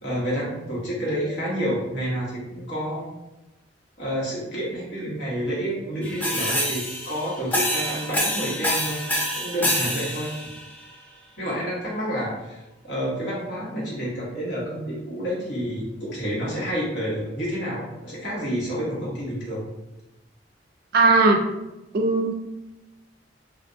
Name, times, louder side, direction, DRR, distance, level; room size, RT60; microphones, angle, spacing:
voice 1, 0.0-3.0 4.0-9.0 9.3-10.3 11.4-12.6 12.8-19.6, equal, 65° left, -7 dB, 1.3 m, -29 dB
sound 1, 6.0-10.8, equal, 10° left, 0.4 m, -27 dB
voice 2, 20.9-21.4 21.9-22.3, right 3 dB, 55° right, 5 dB, 0.4 m, -18 dB
3.5 x 2.5 x 2.7 m, 0.98 s
head